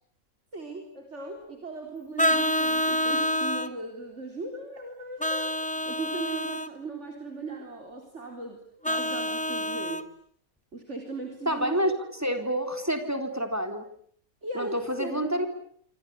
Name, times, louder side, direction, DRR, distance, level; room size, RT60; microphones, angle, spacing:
voice 1, 0.5-5.6 5.9-10.1 10.7-12.0 14.4-15.5, right 3 dB, 55° right, 4 dB, 4.2 m, -38 dB
Vehicle horn car horn honking, 2.2-3.7 5.2-6.7 8.8-10.0, left 1 dB, 5° left, 1.1 m, -27 dB
voice 2, 11.5-11.9 12.2-13.9 14.5-15.5, equal, 10° right, 6 dB, 3.7 m, -28 dB
27.0 x 26.0 x 8.4 m, 0.64 s
omnidirectional pair, 1.4 m